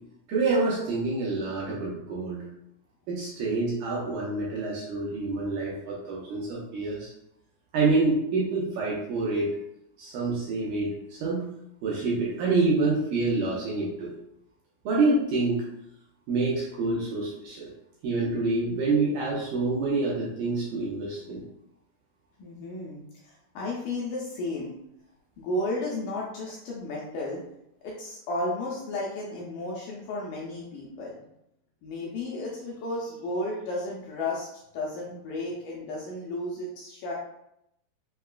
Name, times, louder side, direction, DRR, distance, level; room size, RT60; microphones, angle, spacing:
voice 1, 0.3-2.5 3.1-7.1 7.7-9.6 10.0-11.5 11.8-14.1 14.9-15.6 16.3-17.7 18.0-21.4, right 3 dB, 80° right, -5 dB, 2.0 m, -27 dB
voice 2, 22.4-24.8 25.4-27.4 27.8-31.2 31.8-34.5 34.7-37.1, left 2 dB, 80° left, -4 dB, 1.9 m, -33 dB
5.6 x 2.3 x 2.2 m, 0.80 s
omnidirectional pair, 4.2 m